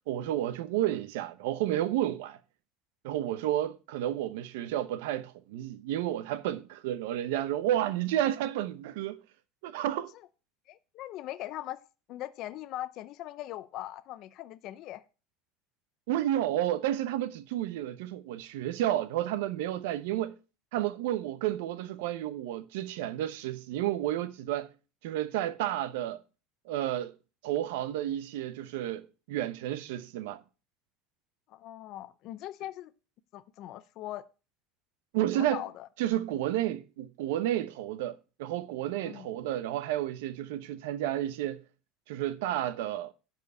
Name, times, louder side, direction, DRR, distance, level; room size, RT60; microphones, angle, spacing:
voice 1, 0.1-2.4 3.0-9.2 9.6-10.1 16.1-20.4 20.7-24.7 25.0-26.2 26.7-27.1 27.4-30.4 35.1-35.6 36.0-41.6 42.1-43.1, right 12 dB, 85° right, 0.8 m, -31 dB
voice 2, 10.7-11.8 12.1-15.0 31.5-32.9 33.3-34.2 35.3-35.9 39.0-39.3, left 14 dB, 40° left, 0.6 m, -40 dB
10.5 x 4.5 x 6.7 m
cardioid pair, 175°, 0 cm